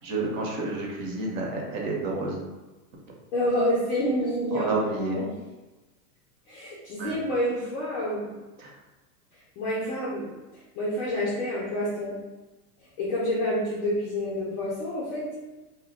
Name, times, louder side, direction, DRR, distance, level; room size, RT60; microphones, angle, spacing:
voice 1, 0.0-2.4 4.5-5.2 7.0-7.2 8.6-8.7, right 3 dB, 55° right, -1 dB, 0.9 m, -30 dB
voice 2, 3.3-5.3 6.5-8.3 9.6-10.3 10.7-12.2 13.0-15.4, equal, 25° left, -8 dB, 0.3 m, -28 dB
2.2 x 2.1 x 3.8 m, 1.1 s
supercardioid pair, 130°, 48 cm